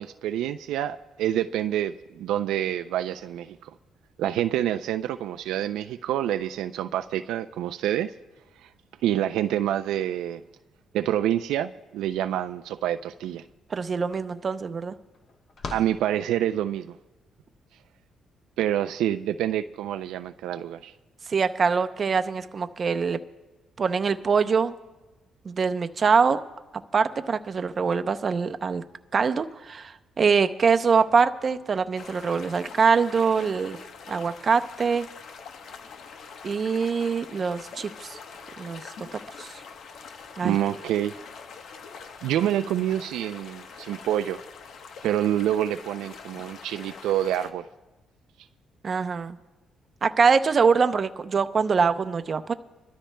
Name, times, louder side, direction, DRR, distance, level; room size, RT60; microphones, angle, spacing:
voice 1, 0.0-3.7 4.2-8.1 8.6-8.7 9.0-10.4 10.9-13.4 15.7-16.9 18.6-20.9 40.4-41.1 42.2-44.4 45.0-47.7, right 11 dB, 90° right, 0.3 m, -27 dB
sound 1, 13.5-13.6 13.8-16.9, left 4 dB, 50° left, 1.1 m, -43 dB
voice 2, 13.7-15.0 21.3-23.2 23.8-24.7 25.5-26.4 26.9-28.8 29.1-33.8 34.1-35.1 36.4-38.2 38.6-38.8 39.1-39.5 40.4-40.6 48.8-49.4 50.0-52.5, right 5 dB, 45° right, 0.6 m, -24 dB
sound 2, 31.9-47.5, left 5 dB, 70° left, 1.0 m, -44 dB
25.5 x 13.0 x 2.2 m
cardioid pair, 90°, 0 cm